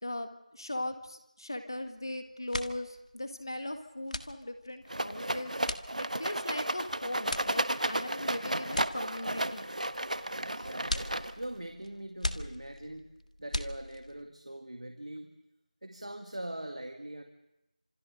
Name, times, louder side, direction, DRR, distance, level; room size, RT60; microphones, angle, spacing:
voice 1, 0.0-9.7, left 1 dB, 35° left, 7 dB, 1.8 m, -39 dB
sound 1, 1.8-2.1 2.3-14.3, left 1 dB, 75° left, 1.6 m, -40 dB
Rattle, 4.9-11.6, right 1 dB, 75° right, 1.2 m, -33 dB
voice 2, 10.4-11.1 11.4-13.1 13.4-15.3 15.8-17.2, right 1 dB, 60° right, 5 dB, 1.9 m, -42 dB
30.0 x 27.0 x 3.9 m, 0.88 s
figure-of-eight pair, 180°, 4 cm